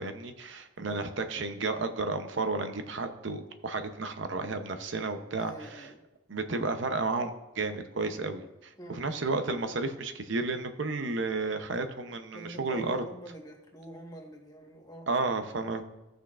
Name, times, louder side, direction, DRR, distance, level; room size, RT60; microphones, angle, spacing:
voice 1, 0.0-5.9 6.3-13.1 15.1-15.8, right 3 dB, 65° right, 8 dB, 0.7 m, -32 dB
voice 2, 5.4-6.0 8.8-9.0 12.3-15.1, equal, 20° left, 1 dB, 1.4 m, -45 dB
16.0 x 6.3 x 2.5 m, 0.97 s
head